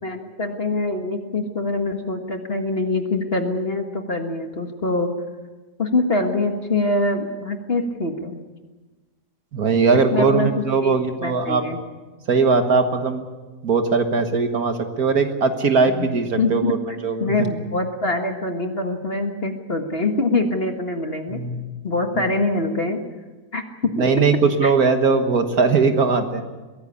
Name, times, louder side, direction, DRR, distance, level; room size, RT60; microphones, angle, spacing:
voice 1, 0.0-5.1 5.8-8.4 9.9-11.8 15.9-16.1 16.4-16.7 17.2-21.4 21.8-23.0 23.5-23.6 24.0-24.2 24.6-24.7, left 2 dB, 40° left, 4 dB, 1.8 m, -24 dB
voice 2, 9.5-11.7 12.3-13.2 13.6-16.8 17.0-17.3 21.3-21.6 24.0-26.4, right 4 dB, 65° right, 6 dB, 1.9 m, -19 dB
22.5 x 16.5 x 8.4 m, 1.2 s
omnidirectional pair, 1.7 m